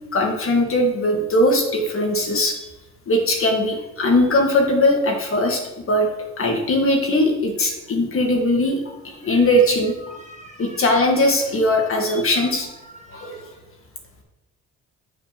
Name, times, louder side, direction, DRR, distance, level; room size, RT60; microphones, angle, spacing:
voice 1, 0.1-2.6 3.1-6.1 6.4-10.1 10.6-12.7 13.1-13.4, left 1 dB, 45° left, 2 dB, 1.6 m, -20 dB
voice 2, 9.2-9.6 10.0-11.1 11.7-11.9 12.4-12.5 12.8-13.5, right 1 dB, 25° right, 2 dB, 1.2 m, -44 dB
9.2 x 5.4 x 3.0 m, 0.99 s
cardioid pair, 90°, 30 cm